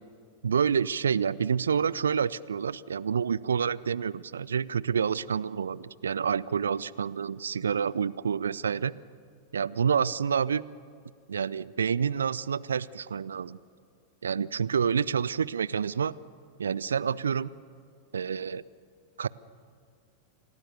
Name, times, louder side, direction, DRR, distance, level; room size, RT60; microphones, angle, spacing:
voice 1, 0.4-8.9 9.5-10.6 11.3-13.6 14.2-16.1 16.6-17.5 18.1-18.6 19.2-19.3, right 7 dB, 70° right, 21 dB, 0.5 m, -28 dB
28.0 x 18.5 x 7.0 m, 2.4 s
figure-of-eight pair, 90°, 0 cm